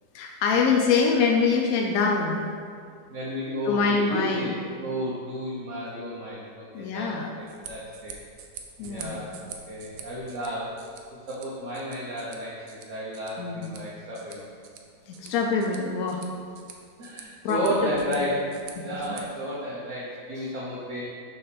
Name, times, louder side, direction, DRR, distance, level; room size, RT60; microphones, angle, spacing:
voice 1, 0.1-2.4 3.7-4.5 6.7-7.3 8.8-9.3 13.4-13.7 15.1-16.2 17.4-17.6 18.1-18.2 18.8-19.0, left 5 dB, 70° left, 1 dB, 0.9 m, -24 dB
voice 2, 3.1-7.0 7.4-8.2 8.8-10.9 11.3-14.5 17.0-21.0, equal, 50° right, -7 dB, 1.2 m, -32 dB
sound 1, 7.4-19.2, right 6 dB, 70° right, 1.2 m, -47 dB
6.7 x 3.2 x 5.8 m, 2.2 s
omnidirectional pair, 1.9 m